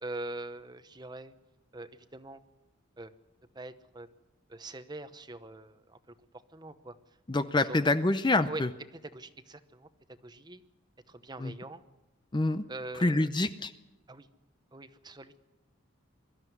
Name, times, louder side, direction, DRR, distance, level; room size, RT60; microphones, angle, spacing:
voice 1, 0.0-1.3 1.7-2.4 3.0-3.1 3.5-4.1 4.5-6.1 6.5-7.0 7.6-7.8 8.5-8.6 9.1-10.6 11.1-11.8 12.7-13.3 14.1-14.3 14.7-15.4, right 2 dB, 20° right, 11 dB, 0.9 m, -43 dB
voice 2, 7.3-8.7 11.4-11.5 12.3-12.6 13.0-13.7, left 2 dB, 20° left, 11 dB, 0.6 m, -26 dB
22.0 x 13.0 x 9.4 m, 1.0 s
head